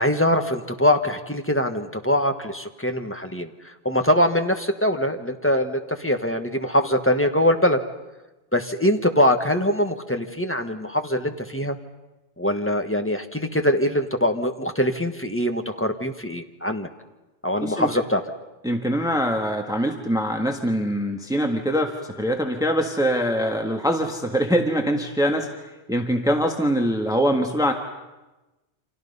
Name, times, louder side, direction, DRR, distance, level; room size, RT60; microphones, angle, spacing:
voice 1, 0.0-3.5 3.8-7.8 8.5-11.8 12.4-16.9 17.4-18.2, left 1 dB, 10° left, 6 dB, 1.4 m, -23 dB
voice 2, 18.6-27.7, equal, 5° right, 3 dB, 1.5 m, -23 dB
29.5 x 26.5 x 5.5 m, 1.1 s
omnidirectional pair, 1.1 m